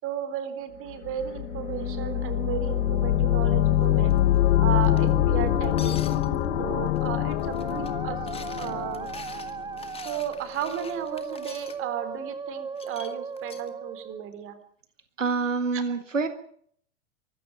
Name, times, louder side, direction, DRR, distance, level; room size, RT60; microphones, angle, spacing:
voice 1, 0.0-4.1 4.6-6.0 6.6-8.2 8.5-9.1 10.0-14.6 15.7-15.8, right 9 dB, 35° right, 11 dB, 3.8 m, -34 dB
sound 1, 1.0-9.9, left 14 dB, 55° left, 1.3 m, -24 dB
Musical instrument, 1.3-14.3, right 5 dB, 10° right, 1.0 m, -38 dB
sound 2, 4.1-4.4 4.8-5.1 5.6-6.5 7.0-7.1 7.3-7.9 8.2-11.8 12.8-13.7, left 6 dB, 15° left, 2.2 m, -45 dB
voice 2, 15.2-16.3, right 4 dB, 85° right, 10 dB, 1.8 m, -26 dB
24.5 x 13.5 x 8.9 m, 0.63 s
figure-of-eight pair, 95°, 37 cm